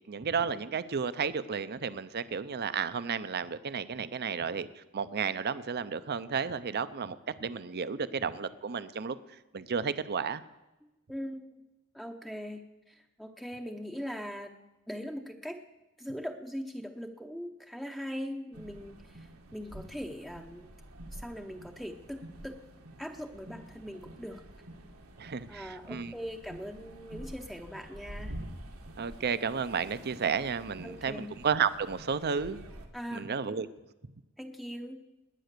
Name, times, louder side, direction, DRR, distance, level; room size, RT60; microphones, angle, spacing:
voice 1, 0.1-4.7 4.9-9.2 9.5-10.4 25.2-26.1 29.0-32.6 33.1-33.7, right 6 dB, 50° right, 14 dB, 0.6 m, -32 dB
voice 2, 10.8-11.5 11.9-14.5 14.9-15.6 16.0-20.7 21.1-22.6 23.0-24.4 25.5-28.4 30.8-31.4 32.9-33.6 34.4-35.0, equal, ahead, 2 dB, 0.7 m, -41 dB
sound 1, 18.5-32.9, right 1 dB, 85° right, 2.0 m, -48 dB
20.0 x 9.1 x 6.7 m, 1.0 s
head